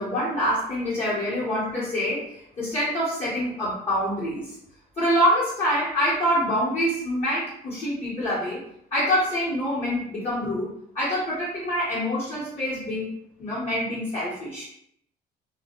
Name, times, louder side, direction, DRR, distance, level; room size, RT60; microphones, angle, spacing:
voice 1, 0.0-4.6 5.0-8.6 8.9-13.1 13.4-14.6, equal, 40° left, -10 dB, 1.0 m, -26 dB
2.3 x 2.1 x 2.8 m, 0.74 s
cardioid pair, 110°, 17 cm